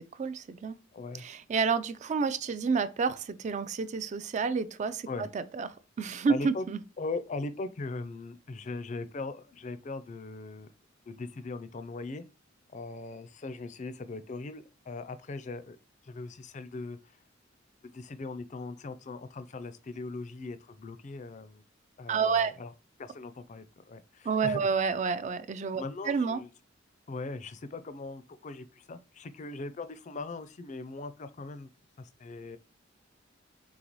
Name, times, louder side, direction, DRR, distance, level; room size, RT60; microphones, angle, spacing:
voice 1, 0.0-0.8 1.2-5.7 6.0-6.8 22.1-22.5 24.2-26.4, right 5 dB, 40° right, 0.3 m, -29 dB
voice 2, 0.9-1.3 5.1-5.3 6.3-6.7 7.0-10.7 11.1-12.2 12.7-15.8 16.0-17.2 17.8-21.6 22.0-22.7 23.0-24.7 25.8-26.5 27.1-31.7 32.0-32.6, left 3 dB, 40° left, 0.4 m, -40 dB
3.9 x 3.8 x 3.0 m
head